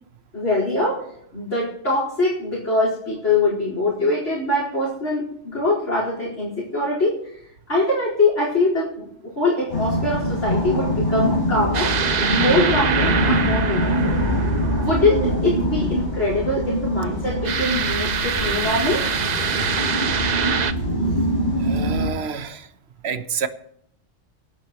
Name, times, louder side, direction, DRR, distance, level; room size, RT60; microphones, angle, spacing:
voice 1, 0.3-1.0 1.3-7.2 7.7-12.0 12.3-14.1 14.7-19.1, left 2 dB, 80° left, 5.2 m, -23 dB
sound 1, 9.7-22.1, equal, 40° left, 5.2 m, -24 dB
sound 2, 11.7-15.2 17.5-20.7, right 6 dB, 45° right, 0.7 m, -24 dB
voice 2, 21.6-22.6 23.0-23.5, right 6 dB, 65° right, 1.2 m, -28 dB
25.0 x 12.0 x 3.1 m
omnidirectional pair, 1.2 m